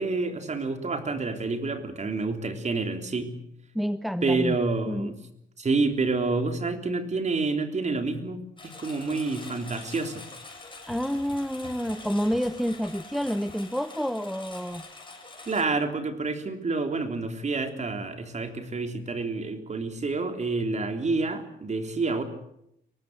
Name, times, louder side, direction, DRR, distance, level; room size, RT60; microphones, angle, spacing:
voice 1, 0.0-3.3 4.2-5.2 5.6-10.2 15.4-22.2, right 3 dB, 35° right, 7 dB, 3.4 m, -28 dB
voice 2, 3.7-4.6 4.9-5.1 10.9-14.8, equal, ahead, 13 dB, 0.9 m, -29 dB
Engine, 8.6-15.6, left 3 dB, 25° left, 7.3 m, -44 dB
24.0 x 18.5 x 8.0 m, 0.76 s
cardioid pair, 90°, 20 cm